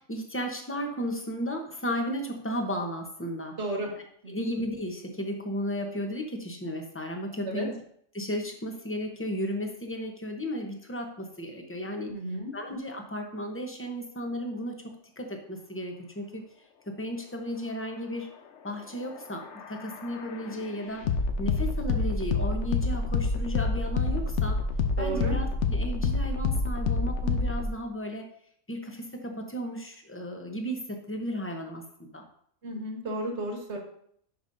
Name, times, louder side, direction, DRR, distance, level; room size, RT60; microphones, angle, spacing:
voice 1, 0.0-3.6 4.3-7.8 8.1-12.1 12.5-16.4 17.0-18.3 18.6-21.0 21.4-24.6 25.0-28.3 28.7-31.8 32.1-32.2, equal, 10° left, 3 dB, 0.8 m, -34 dB
voice 2, 3.6-3.9 4.2-4.3 7.4-7.7 12.1-12.5 25.0-25.3 32.6-33.8, right 2 dB, 55° right, 1 dB, 1.7 m, -33 dB
sound 1, 19.0-27.7, left 4 dB, 65° left, 1.0 m, -28 dB
10.5 x 5.2 x 2.7 m, 0.65 s
omnidirectional pair, 1.4 m